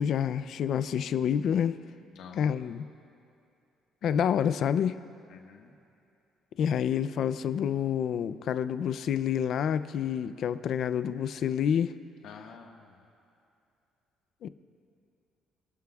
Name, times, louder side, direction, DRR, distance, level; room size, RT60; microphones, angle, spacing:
voice 1, 0.0-1.8 2.4-2.9 4.0-4.9 6.6-11.9 14.4-14.5, left 8 dB, 50° left, 13 dB, 0.4 m, -28 dB
voice 2, 2.1-2.5 5.3-5.7 12.2-13.0, left 6 dB, 65° left, 2 dB, 1.5 m, -48 dB
27.5 x 13.0 x 2.4 m, 2.6 s
cardioid pair, 170°, 0 cm